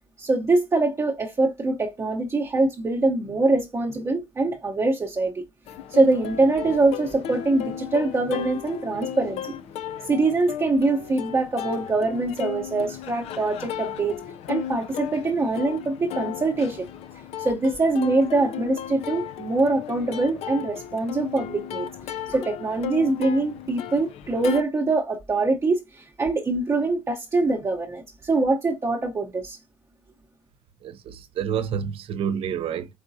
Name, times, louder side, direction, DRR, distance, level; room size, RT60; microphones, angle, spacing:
voice 1, 0.2-5.4 5.9-9.5 10.1-14.2 14.5-16.9 17.4-21.9 22.3-29.6, right 3 dB, 25° right, 0.8 m, -23 dB
Plucked string instrument, 5.7-24.6, left 10 dB, 65° left, 0.5 m, -35 dB
voice 2, 30.8-32.9, right 8 dB, 60° right, 0.7 m, -28 dB
4.8 x 3.5 x 2.7 m
supercardioid pair, 90°, 11 cm